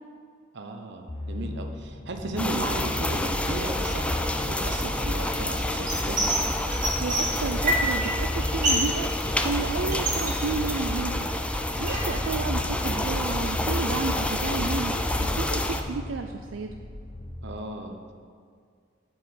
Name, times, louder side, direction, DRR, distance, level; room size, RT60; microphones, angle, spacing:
voice 1, 0.5-6.3 17.4-18.1, right 2 dB, 65° right, 4 dB, 0.8 m, -35 dB
sound 1, 1.1-17.6, left 1 dB, 40° left, 0.8 m, -38 dB
sound 2, 2.4-15.8, left 1 dB, 5° left, 0.4 m, -28 dB
sound 3, 5.9-6.4 6.7-8.1 8.4-8.9 9.2-11.0 11.4-12.2, right 1 dB, 40° right, 1.8 m, -27 dB
voice 2, 7.0-11.3 11.8-16.7, right 4 dB, 85° right, 5 dB, 0.4 m, -32 dB
7.7 x 4.9 x 7.1 m, 2.1 s
head